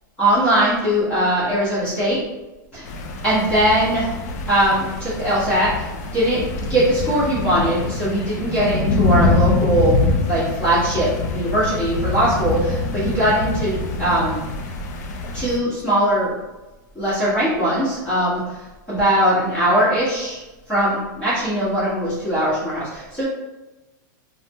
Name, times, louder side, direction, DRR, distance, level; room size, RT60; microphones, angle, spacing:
voice 1, 0.2-2.2 2.7-2.8 3.2-4.2 4.5-5.9 6.1-6.4 6.7-10.0 10.3-14.4 15.3-16.3 16.9-18.6 18.9-20.4 20.7-23.2, right 1 dB, 10° left, -12 dB, 1.0 m, -20 dB
sound 1, 2.9-15.6, left 3 dB, 50° left, 0.4 m, -24 dB
2.7 x 2.0 x 3.4 m, 1.1 s
supercardioid pair, 165°, 11 cm